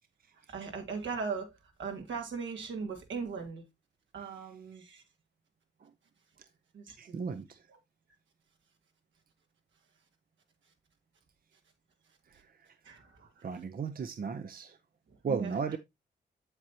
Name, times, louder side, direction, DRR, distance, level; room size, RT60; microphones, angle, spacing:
voice 1, 0.5-1.5 1.8-3.6 4.1-5.0 6.7-7.4 7.7-7.8 12.8-13.5 15.3-15.6, right 5 dB, 85° right, 2.3 m, -39 dB
voice 2, 7.0-7.5 13.4-14.7 15.2-15.8, right 5 dB, 50° right, 0.7 m, -34 dB
7.9 x 7.5 x 2.8 m
cardioid pair, 80°, 19 cm